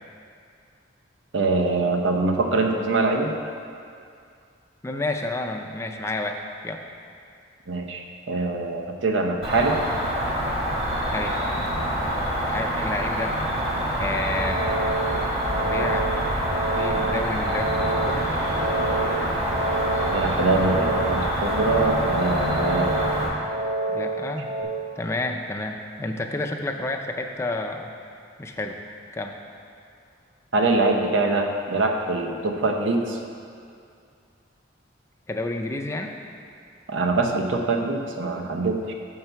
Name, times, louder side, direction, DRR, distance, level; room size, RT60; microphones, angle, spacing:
voice 1, 1.3-3.3 7.7-9.8 20.1-23.1 30.5-33.2 36.9-38.9, right 3 dB, 70° right, 3 dB, 0.7 m, -24 dB
voice 2, 4.8-6.8 11.1-11.4 12.5-13.4 14.0-14.7 15.6-16.1 16.8-18.3 23.9-24.6 25.0-27.9 28.4-28.8 29.1-29.4 35.3-36.1, left 2 dB, 15° left, 3 dB, 0.4 m, -30 dB
Cricket, 9.4-23.3, equal, 30° right, 1.2 m, -26 dB
sound 1, 14.2-24.6, right 2 dB, 45° right, 1.9 m, -29 dB
6.7 x 5.6 x 4.5 m, 2.3 s
head